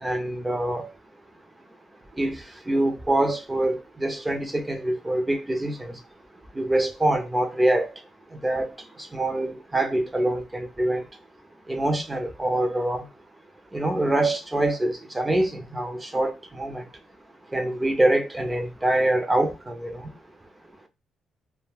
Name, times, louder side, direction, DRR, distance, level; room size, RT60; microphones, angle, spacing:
voice 1, 0.0-0.9 2.2-5.9 6.6-7.9 8.3-8.7 9.1-11.0 11.7-13.1 13.7-16.8 17.5-20.1, right 1 dB, 15° right, 0.6 m, -25 dB
2.2 x 2.1 x 3.2 m
cardioid pair, 90°, 0 cm